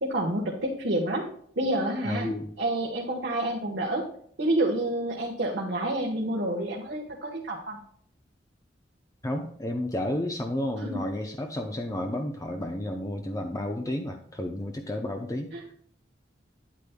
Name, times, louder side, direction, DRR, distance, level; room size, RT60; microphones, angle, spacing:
voice 1, 0.0-1.3 1.6-2.3 2.6-4.0 4.4-7.8 10.8-11.0 15.5-15.6, right 1 dB, 70° right, -3 dB, 1.4 m, -28 dB
voice 2, 2.0-2.5 9.2-15.5, left 1 dB, 20° left, 3 dB, 0.6 m, -31 dB
9.6 x 8.4 x 2.3 m, 0.63 s
head